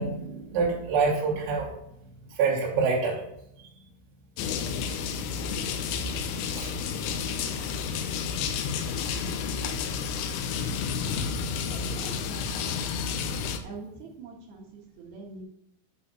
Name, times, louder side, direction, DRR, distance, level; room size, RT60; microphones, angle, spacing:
voice 1, 0.0-1.7 2.3-3.2 3.6-3.8 6.5-6.8 10.5-10.9 11.9-12.1, right 4 dB, 85° right, -3 dB, 5.2 m, -27 dB
sound 1, 4.4-13.6, left 6 dB, 80° left, 3.2 m, -31 dB
voice 2, 11.2-12.9 13.6-15.4, right 3 dB, 60° right, -1 dB, 3.1 m, -44 dB
11.0 x 6.2 x 5.7 m, 0.78 s
omnidirectional pair, 5.8 m